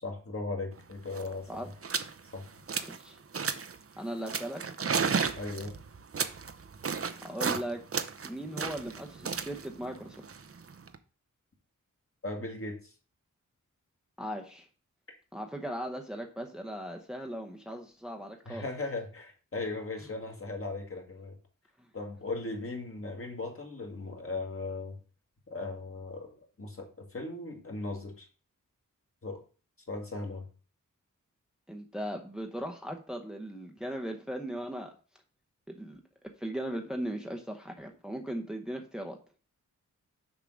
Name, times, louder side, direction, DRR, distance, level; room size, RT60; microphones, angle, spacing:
voice 1, 0.0-1.5 2.3-2.5 5.3-5.8 12.2-12.9 18.5-21.4 21.9-25.0 25.5-28.3 29.2-29.4 29.9-30.5, left 2 dB, 45° left, 1 dB, 2.1 m, -38 dB
sound 1, 0.8-0.9 1.1-1.3 1.8-2.1 2.5-3.0 3.3-3.8 4.3-7.6 7.9-11.0, right 5 dB, 45° right, 0.7 m, -33 dB
voice 2, 2.8-3.2 4.0-4.6 7.1-7.8 8.2-10.2 14.2-14.7 15.3-18.7 21.8-21.9 31.7-34.9 35.7-36.0 36.4-39.2, equal, ahead, 4 dB, 0.8 m, -38 dB
6.8 x 3.7 x 6.3 m, 0.37 s
wide cardioid pair, 90°, 32 cm